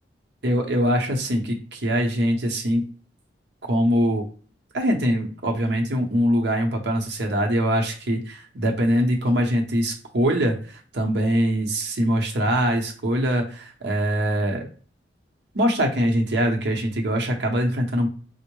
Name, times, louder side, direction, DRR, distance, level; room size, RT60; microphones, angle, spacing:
voice 1, 0.4-2.8 3.6-4.2 4.7-14.7 15.5-18.1, equal, 70° right, 2 dB, 0.8 m, -23 dB
4.3 x 2.0 x 3.1 m, 0.41 s
head